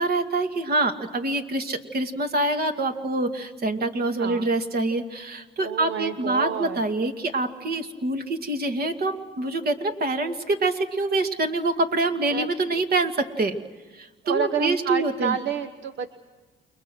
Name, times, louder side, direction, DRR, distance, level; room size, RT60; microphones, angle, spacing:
voice 1, 0.0-13.6 14.0-15.4, right 2 dB, 50° right, 6 dB, 2.3 m, -25 dB
voice 2, 5.6-6.8 12.3-12.8 14.2-16.1, right 8 dB, 65° right, 8 dB, 1.1 m, -29 dB
29.0 x 23.0 x 6.3 m, 1.3 s
cardioid pair, 90°, 20 cm